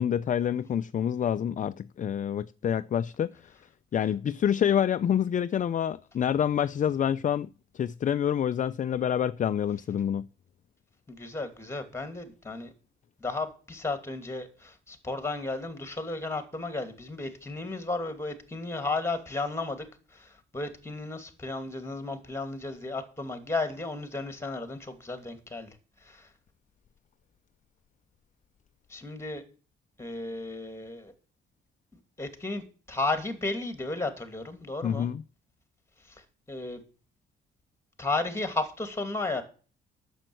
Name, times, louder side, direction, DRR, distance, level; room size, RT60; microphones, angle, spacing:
voice 1, 0.0-3.5 3.9-10.3 34.8-35.2, left 9 dB, 40° left, 0.5 m, -27 dB
voice 2, 11.1-12.7 13.2-26.3 28.9-29.4 30.0-31.1 32.2-35.1 36.0-36.8 38.0-39.4, left 2 dB, 15° left, 2.5 m, -34 dB
9.0 x 7.2 x 7.8 m
cardioid pair, 90°, 20 cm